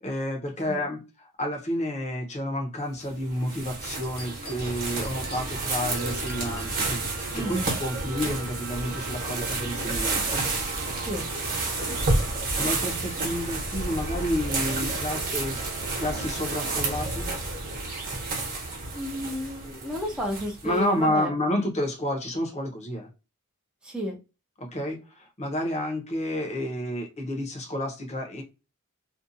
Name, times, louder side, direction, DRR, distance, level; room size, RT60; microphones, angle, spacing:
voice 1, 0.0-7.1 7.3-10.4 12.6-15.7 16.0-17.3 20.6-23.1 24.6-28.4, left 1 dB, 30° left, 0.7 m, -30 dB
sound 1, 3.0-20.8, right 2 dB, 40° right, 0.9 m, -30 dB
sound 2, 4.0-7.9, left 1 dB, 55° left, 1.1 m, -46 dB
sound 3, 5.1-16.7, right 6 dB, 75° right, 0.5 m, -46 dB
voice 2, 7.3-7.8 11.1-11.2 18.9-21.3 23.8-24.2, left 1 dB, 5° right, 0.5 m, -32 dB
2.6 x 2.3 x 2.5 m
head